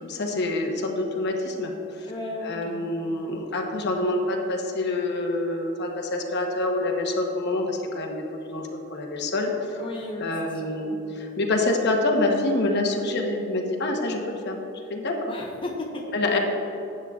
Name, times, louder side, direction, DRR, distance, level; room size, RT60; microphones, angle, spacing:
voice 1, 0.0-2.1 2.4-9.7 10.2-14.6 14.9-15.2 16.1-16.4, left 2 dB, 55° left, 2 dB, 1.0 m, -26 dB
voice 2, 2.1-2.9 9.7-10.7 15.3-16.0, left 2 dB, 25° left, -1 dB, 0.8 m, -35 dB
12.0 x 8.8 x 2.4 m, 3.0 s
head